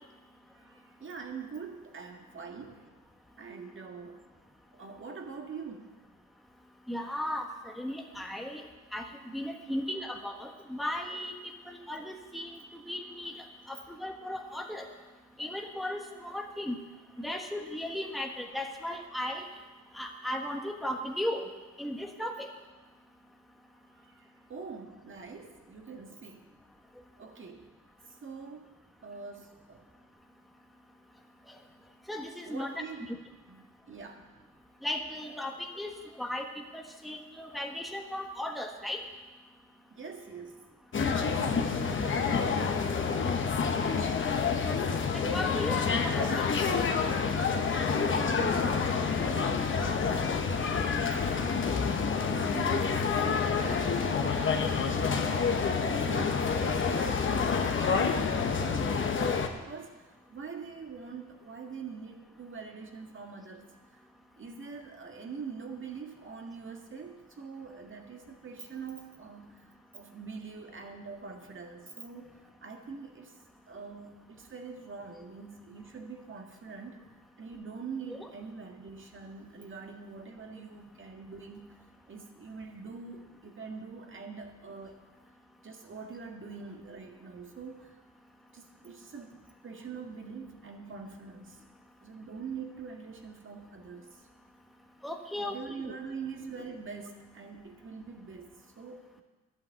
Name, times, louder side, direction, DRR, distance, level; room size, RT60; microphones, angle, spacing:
voice 1, 0.5-2.9 3.4-4.3 4.7-6.0 8.2-8.3 23.9-26.5 27.2-27.7 28.2-28.7 29.0-29.8 32.5-33.1 33.5-34.3 39.9-40.7 41.3-43.3 47.9-63.7 64.4-69.7 69.9-72.3 72.6-73.4 73.7-77.1 77.4-81.8 82.1-85.0 85.6-88.0 88.5-89.3 89.6-91.6 92.0-94.2 95.4-99.2, right 5 dB, 40° right, 3 dB, 1.9 m, -44 dB
voice 2, 6.9-8.6 8.9-11.3 11.7-14.9 15.4-16.8 17.2-19.5 19.9-21.5 21.8-22.5 32.1-33.2 34.8-35.9 36.2-39.0 45.1-46.5 78.1-78.3 95.0-96.0, left 1 dB, ahead, 2 dB, 1.4 m, -36 dB
sound 1, 40.9-59.5, left 5 dB, 40° left, 1.3 m, -28 dB
11.0 x 8.7 x 7.7 m, 1.2 s
cardioid pair, 90°, 30 cm